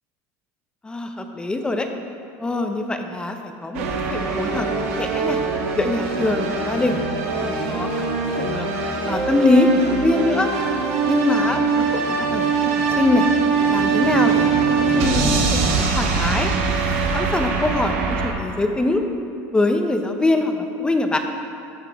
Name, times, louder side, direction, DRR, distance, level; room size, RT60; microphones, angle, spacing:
voice 1, 0.8-1.9 2.4-3.8 4.1-4.7 5.0-5.4 5.8-7.0 7.3-8.1 8.4-8.7 9.1-10.5 11.1-13.3 13.7-15.3 15.6-16.5 17.1-19.0 19.5-21.2, left 2 dB, 15° left, 5 dB, 0.6 m, -23 dB
sound 1, 3.7-18.3, right 4 dB, 85° right, 1.1 m, -22 dB
13.0 x 5.8 x 3.5 m, 2.7 s
supercardioid pair, 110°, 7 cm